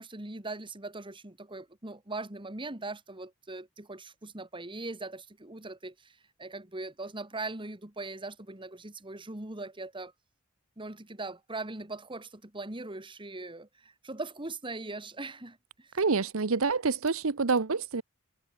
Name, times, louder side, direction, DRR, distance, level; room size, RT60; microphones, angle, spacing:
voice 1, 0.0-10.1 10.8-15.9, right 2 dB, 25° right, 2.2 m, -40 dB
voice 2, 16.0-18.0, right 4 dB, 75° right, 0.9 m, -27 dB
head